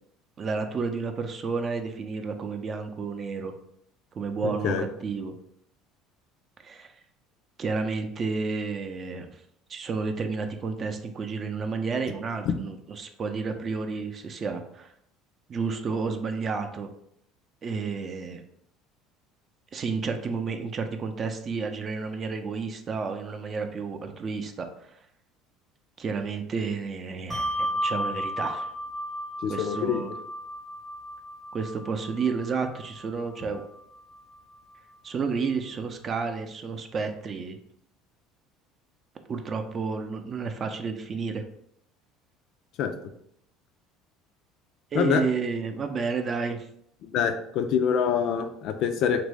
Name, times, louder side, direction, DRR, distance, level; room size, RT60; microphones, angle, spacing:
voice 1, 0.4-3.5 4.1-5.3 6.6-6.9 7.6-9.4 9.7-14.9 15.5-16.9 17.6-18.4 19.7-25.0 26.0-28.7 29.5-30.1 31.5-33.6 35.0-37.6 39.3-41.4 44.9-46.7, right 4 dB, 40° right, 6 dB, 0.5 m, -31 dB
voice 2, 4.4-4.9 29.4-30.0 42.8-42.9 44.9-45.2 47.0-49.2, left 7 dB, 60° left, 7 dB, 0.4 m, -25 dB
Bell, 27.3-34.2, equal, 20° right, 0.8 m, -34 dB
3.0 x 2.6 x 3.3 m, 0.72 s
hypercardioid pair, 80°, 0 cm